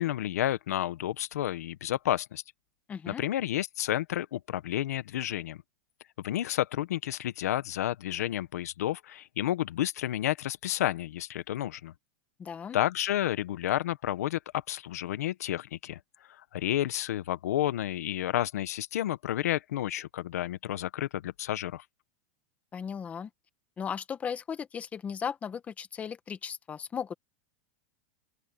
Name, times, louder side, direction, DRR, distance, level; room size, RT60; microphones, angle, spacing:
voice 1, 0.0-2.4 3.1-5.6 6.2-11.9 12.7-16.0 16.5-21.8, left 13 dB, 85° left, 1.1 m, -31 dB
voice 2, 2.9-3.2 12.4-12.8 22.7-23.3 23.8-27.1, left 7 dB, 15° left, 1.4 m, -36 dB
open air
supercardioid pair, 155°, 8 cm